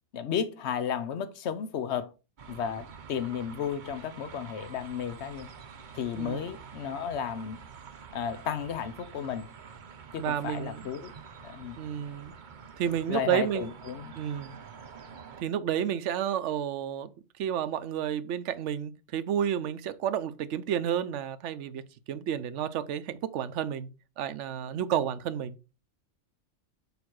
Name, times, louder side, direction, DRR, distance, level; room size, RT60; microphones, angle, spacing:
voice 1, 0.1-2.1 2.5-5.5 5.9-7.7 8.1-9.5 10.1-11.1 11.4-11.8 13.1-14.1, left 8 dB, 65° left, 1.0 m, -33 dB
sound 1, 2.4-15.4, right 6 dB, 45° right, 0.8 m, -47 dB
voice 2, 10.2-10.9 11.8-12.3 12.8-13.7 14.1-14.6 15.4-17.1 17.4-21.8 22.1-23.9 24.2-25.6, right 9 dB, 70° right, 1.0 m, -31 dB
7.0 x 4.9 x 4.6 m
omnidirectional pair, 1.3 m